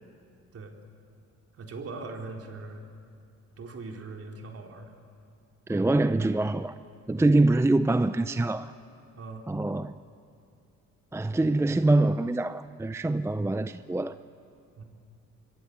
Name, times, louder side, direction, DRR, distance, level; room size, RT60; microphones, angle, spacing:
voice 1, 1.6-2.8 3.6-4.9 6.2-6.3 9.2-9.5 14.8-14.9, right 3 dB, 50° right, 2 dB, 3.7 m, -40 dB
voice 2, 5.7-6.7 7.1-8.7 9.5-10.0 11.1-14.2, right 2 dB, 10° right, 12 dB, 0.5 m, -24 dB
25.0 x 23.0 x 8.4 m, 2.4 s
cardioid pair, 90°, 30 cm